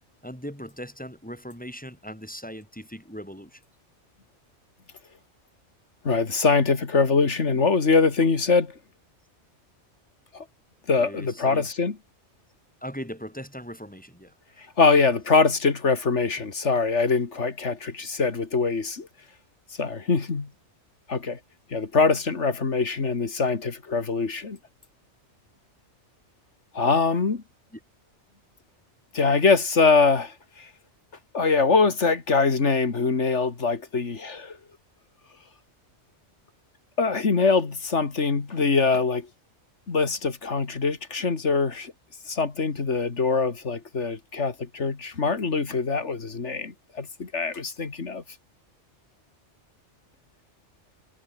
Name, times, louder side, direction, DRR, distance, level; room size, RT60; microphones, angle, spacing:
voice 1, 0.2-3.6 11.0-11.7 12.8-14.7 16.4-16.5 27.7-27.8, equal, 5° left, 5.2 m, -39 dB
voice 2, 6.0-8.8 10.3-10.4 10.9-12.0 14.8-19.1 19.8-20.5 21.1-21.4 21.7-24.6 26.7-27.4 29.1-30.7 31.3-34.6 37.0-39.3 39.9-41.9 42.3-48.2, left 4 dB, 80° left, 2.5 m, -23 dB
omnidirectional pair, 1.2 m